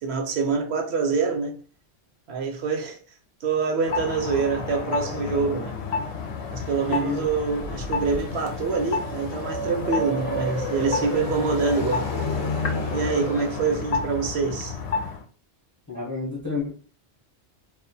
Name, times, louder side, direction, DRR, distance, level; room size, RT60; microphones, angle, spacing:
voice 1, 0.0-1.6 2.3-3.0 3.4-5.8 6.5-12.1 12.9-14.8, right 4 dB, 70° right, 0.8 m, -25 dB
sound 1, 3.8-15.2, left 5 dB, 65° left, 0.7 m, -30 dB
voice 2, 6.9-7.2 15.9-16.7, left 5 dB, 25° left, 0.3 m, -29 dB
sound 2, 7.2-13.8, right 2 dB, 45° right, 0.4 m, -34 dB
2.3 x 2.1 x 2.6 m
omnidirectional pair, 1.2 m